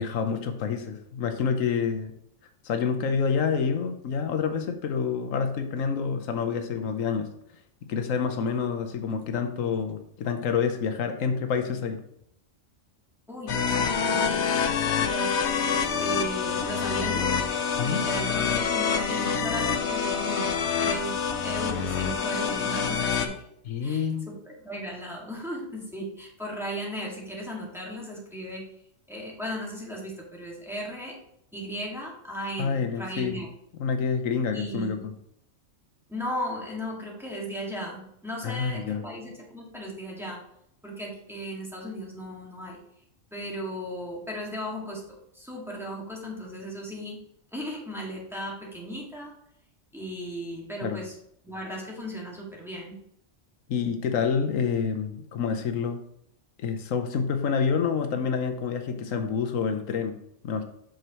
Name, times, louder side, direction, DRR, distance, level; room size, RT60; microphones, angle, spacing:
voice 1, 0.0-2.1 2.6-7.3 7.9-12.0 17.8-18.0 23.7-24.3 32.6-33.4 33.8-35.0 38.4-39.0 50.8-51.0 53.7-56.0 56.6-60.6, left 6 dB, 85° left, 6 dB, 1.2 m, -28 dB
voice 2, 13.3-15.5 16.0-17.4 17.8-21.1 21.4-23.4 23.8-28.6 29.1-31.2 31.5-33.5 34.5-35.0 36.1-40.4 40.8-42.8 43.3-47.2 47.5-49.3 49.9-51.1 51.4-53.0, equal, ahead, -3 dB, 1.9 m, -36 dB
sound 1, 13.5-23.3, left 6 dB, 65° left, 1.0 m, -26 dB
7.7 x 6.3 x 3.0 m, 0.74 s
omnidirectional pair, 1.3 m